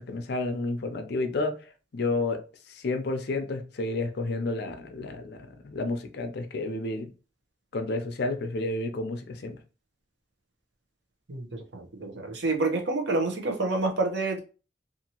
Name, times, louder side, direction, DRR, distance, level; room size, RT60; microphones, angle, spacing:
voice 1, 0.1-1.6 1.9-2.4 2.7-5.4 5.6-7.1 7.7-9.6, left 2 dB, 65° left, 0.5 m, -30 dB
voice 2, 11.7-14.4, right 2 dB, 75° right, 0.8 m, -28 dB
2.8 x 2.5 x 2.8 m
head